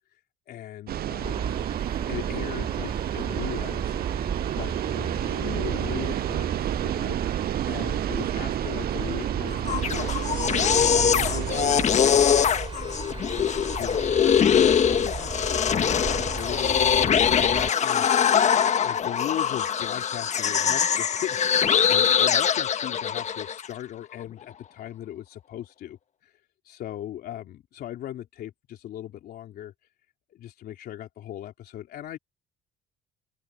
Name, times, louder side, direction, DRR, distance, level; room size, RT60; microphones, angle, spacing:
voice 1, 0.5-1.7 2.1-4.2 4.6-7.2 7.6-10.1 10.7-12.6 13.2-18.3 18.8-26.3 26.6-29.7 30.3-32.2, left 12 dB, 65° left, 3.6 m, -38 dB
sound 1, 0.9-11.8, right 12 dB, 65° right, 7.9 m, -30 dB
sound 2, 1.2-17.7, right 5 dB, 30° right, 7.6 m, -35 dB
sound 3, 9.5-23.7, left 8 dB, 45° left, 1.3 m, -23 dB
cardioid pair, 110°, 17 cm